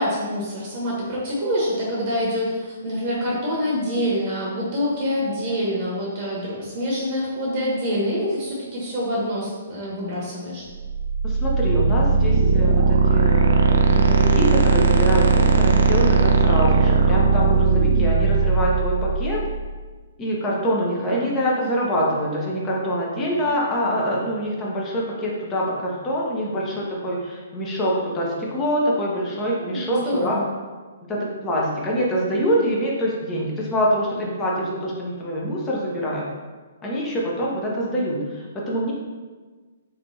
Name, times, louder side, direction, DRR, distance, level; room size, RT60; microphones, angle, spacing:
voice 1, 0.0-10.7 21.1-21.5 29.6-30.5, equal, 40° right, -5 dB, 0.9 m, -26 dB
sound 1, 10.8-19.7, right 4 dB, 65° right, 0.3 m, -18 dB
voice 2, 11.2-19.4 20.2-30.4 31.1-36.3 36.8-38.9, equal, 20° left, -3 dB, 0.8 m, -25 dB
3.5 x 2.9 x 2.6 m, 1.4 s
hypercardioid pair, 135°, 0 cm